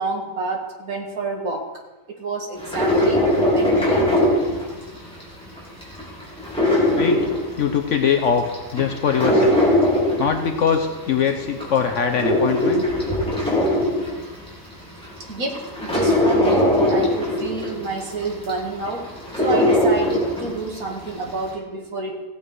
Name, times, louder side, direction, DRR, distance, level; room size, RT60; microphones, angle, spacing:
voice 1, 0.0-1.6 2.1-4.0 15.3-19.1 19.4-22.2, right 3 dB, 85° right, 1 dB, 2.3 m, -29 dB
sound 1, 2.6-5.2 5.6-7.9 8.3-10.9 11.4-14.5 15.0-15.1 15.5-20.7 21.0-21.1, left 1 dB, 5° left, 3.3 m, -20 dB
voice 2, 7.6-8.4 8.7-9.6 9.9-12.9, left 7 dB, 65° left, 5 dB, 1.1 m, -22 dB
16.0 x 8.6 x 4.7 m, 1.1 s
omnidirectional pair, 1.5 m